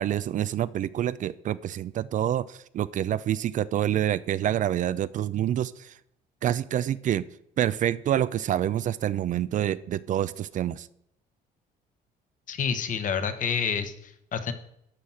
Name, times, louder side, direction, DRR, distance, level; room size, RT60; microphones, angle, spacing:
voice 1, 0.0-5.9 6.4-7.3 7.6-10.9, right 11 dB, 50° right, 17 dB, 0.4 m, -27 dB
voice 2, 12.5-14.5, left 6 dB, 50° left, 9 dB, 1.2 m, -29 dB
11.5 x 4.1 x 7.3 m, 0.75 s
cardioid pair, 110°, 17 cm